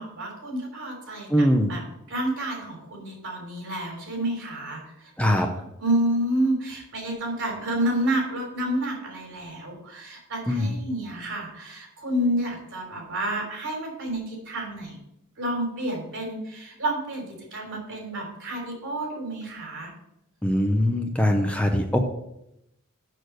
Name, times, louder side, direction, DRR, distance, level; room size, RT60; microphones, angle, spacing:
voice 1, 0.0-1.8 2.1-5.5 5.8-15.0 15.4-19.9, right 1 dB, 60° right, 0 dB, 3.4 m, -29 dB
voice 2, 1.3-1.7 5.2-5.5 10.5-10.7 20.4-22.0, equal, 5° left, 4 dB, 0.6 m, -22 dB
6.7 x 6.5 x 6.3 m, 0.84 s
head